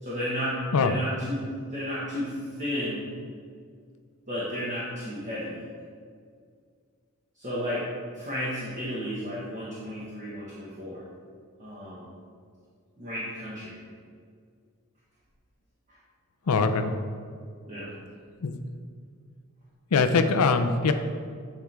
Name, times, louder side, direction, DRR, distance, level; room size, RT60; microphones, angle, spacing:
voice 1, 0.0-3.0 4.3-5.6 7.3-7.9 8.1-11.0 11.6-12.1 13.0-13.8 17.7-17.9, equal, 35° right, -8 dB, 1.4 m, -33 dB
voice 2, 16.5-16.9 18.4-18.6 19.9-20.9, left 4 dB, 75° left, 8 dB, 0.5 m, -22 dB
9.3 x 4.4 x 3.4 m, 2.1 s
head